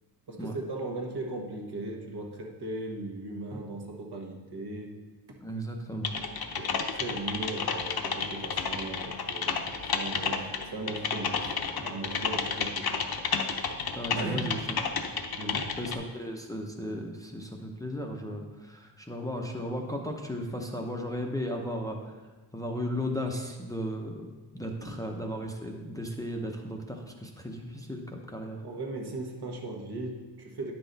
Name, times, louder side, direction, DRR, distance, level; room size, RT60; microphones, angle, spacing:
voice 1, 0.3-4.9 5.3-5.4 6.5-9.7 9.9-13.0 13.7-13.8 14.1-14.5 15.3-15.8 24.8-25.0 28.6-30.7, right 2 dB, 70° right, 0 dB, 1.3 m, -38 dB
voice 2, 5.4-6.1 14.0-14.6 15.8-22.2 22.5-24.3 24.5-28.6, equal, 10° left, 1 dB, 0.6 m, -35 dB
Typing, 6.0-16.0, left 6 dB, 60° left, 0.8 m, -31 dB
9.8 x 5.9 x 4.0 m, 1.3 s
wide cardioid pair, 150°, 41 cm